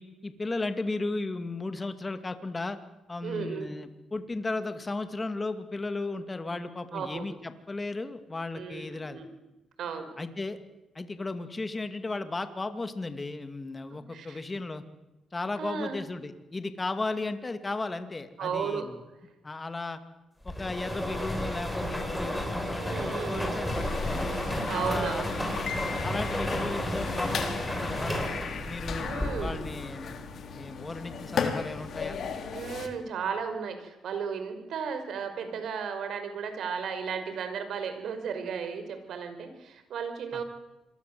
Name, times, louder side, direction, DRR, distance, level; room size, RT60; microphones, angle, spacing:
voice 1, 0.0-2.8 3.1-9.2 10.2-10.6 10.9-14.8 15.3-19.0 19.4-20.0 20.4-24.2 24.7-25.3 26.0-28.3 28.7-30.2 30.5-32.2 40.3-40.4, left 3 dB, 25° left, 9 dB, 2.4 m, -35 dB
voice 2, 3.2-3.7 6.9-7.3 8.6-9.3 9.8-10.1 14.1-14.4 15.6-16.0 18.4-18.9 22.8-23.5 24.7-25.3 28.9-29.6 32.5-40.4, right 6 dB, 70° right, 8 dB, 5.4 m, -34 dB
sound 1, 20.5-29.8, equal, 5° left, 7.9 m, -32 dB
sound 2, 23.7-32.9, left 5 dB, 60° left, 3.5 m, -36 dB
27.0 x 22.0 x 7.9 m, 1.0 s
cardioid pair, 90°, 0 cm